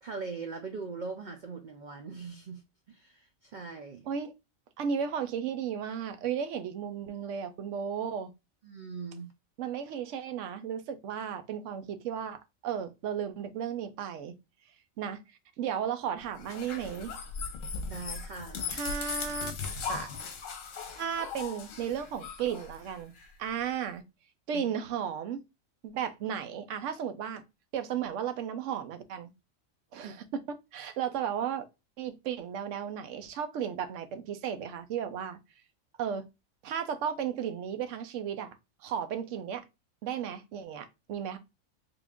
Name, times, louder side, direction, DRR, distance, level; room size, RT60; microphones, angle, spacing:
voice 1, 0.0-4.1 8.6-9.3 17.9-18.8 24.5-24.7 30.0-30.1, right 4 dB, 85° right, 0.4 m, -41 dB
voice 2, 4.8-8.3 9.6-14.3 15.0-15.2 15.6-17.1 18.7-19.5 19.9-20.1 20.9-23.1 23.4-24.0 24.5-25.4 25.8-27.4 27.7-29.3 29.9-31.7 32.0-35.4 36.0-36.2 36.6-38.6 38.8-39.6 40.0-41.4, right 8 dB, 70° right, 0.9 m, -34 dB
sound 1, 16.3-23.3, left 5 dB, 70° left, 1.1 m, -38 dB
3.6 x 2.4 x 3.4 m
omnidirectional pair, 1.4 m